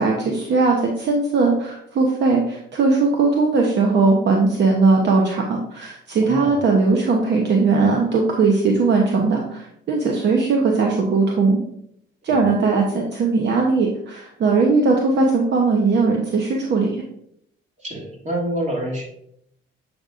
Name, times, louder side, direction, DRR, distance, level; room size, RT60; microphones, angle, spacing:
voice 1, 0.0-11.6 12.2-17.0, right 4 dB, 60° right, 1 dB, 0.9 m, -19 dB
voice 2, 6.1-6.6 12.2-12.5 17.8-19.0, right 1 dB, 35° right, -2 dB, 2.3 m, -28 dB
7.7 x 5.3 x 2.5 m, 0.73 s
cardioid pair, 90°, 20 cm